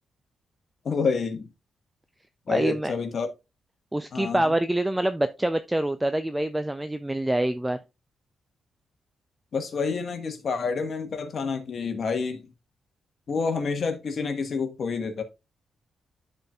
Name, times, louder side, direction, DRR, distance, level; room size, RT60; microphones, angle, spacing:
voice 1, 0.8-1.5 2.5-3.3 4.1-4.5 9.5-12.5 13.3-15.2, left 5 dB, 50° left, 1.4 m, -28 dB
voice 2, 2.5-2.9 3.9-7.8, right 1 dB, 10° right, 0.4 m, -25 dB
13.0 x 4.4 x 2.3 m
cardioid pair, 120°, 0 cm